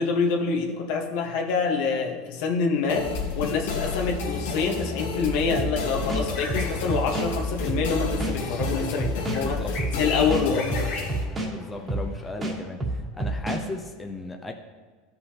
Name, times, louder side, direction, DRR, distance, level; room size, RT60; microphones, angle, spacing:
voice 1, 0.0-3.1 3.3-9.6 9.9-10.9, left 5 dB, 65° left, 1 dB, 1.2 m, -26 dB
sound 1, 2.9-11.2, left 4 dB, 90° left, 1.5 m, -31 dB
sound 2, 5.6-5.7 6.1-7.3 7.7-7.8 8.2-9.4 9.8-10.0 10.3-11.5 11.9-12.1 12.4-13.6, right 2 dB, 20° right, 1.5 m, -28 dB
sound 3, 6.1-12.3, left 3 dB, 50° left, 1.4 m, -39 dB
voice 2, 9.4-9.7 11.5-14.5, left 2 dB, 10° left, 3 dB, 0.5 m, -36 dB
13.0 x 5.5 x 2.9 m, 1.5 s
supercardioid pair, 130°, 0 cm